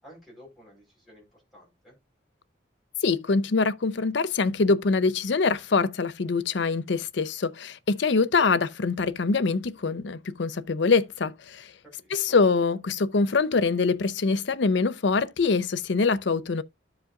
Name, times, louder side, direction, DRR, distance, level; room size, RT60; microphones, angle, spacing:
voice 1, 0.0-1.9 11.8-12.3, equal, ahead, 4.1 m, -52 dB
voice 2, 3.0-11.7 12.1-16.6, left 4 dB, 70° left, 0.6 m, -24 dB
13.5 x 4.9 x 2.4 m
head